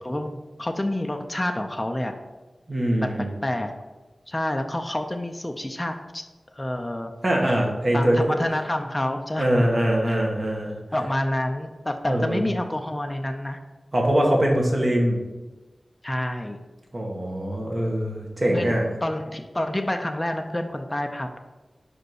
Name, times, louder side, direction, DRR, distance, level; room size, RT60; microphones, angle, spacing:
voice 1, 0.0-2.1 3.0-3.1 3.4-3.7 4.3-6.2 6.6-7.1 7.9-9.7 10.1-10.2 10.9-13.6 16.0-16.6 18.5-21.4, left 1 dB, 15° left, 4 dB, 0.5 m, -28 dB
voice 2, 2.7-3.3 7.2-8.4 9.4-10.7 12.1-12.4 13.9-15.2 16.9-18.8, right 1 dB, 35° right, -1 dB, 1.6 m, -23 dB
5.3 x 5.1 x 6.3 m, 1.2 s
wide cardioid pair, 90°, 0 cm